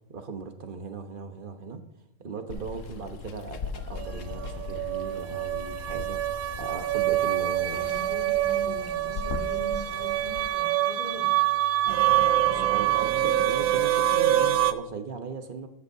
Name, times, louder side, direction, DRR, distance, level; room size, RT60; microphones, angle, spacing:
voice 1, 0.1-1.8 2.2-6.2 6.6-7.9 12.4-15.7, right 5 dB, 40° right, 6 dB, 1.1 m, -38 dB
Water, 2.5-10.5, left 5 dB, 65° left, 1.1 m, -39 dB
sound 1, 3.9-14.7, right 13 dB, 80° right, 1.1 m, -25 dB
voice 2, 7.4-11.7 12.4-12.8, left 1 dB, 5° left, -2 dB, 4.0 m, -42 dB
13.5 x 12.0 x 2.7 m, 0.82 s
omnidirectional pair, 1.5 m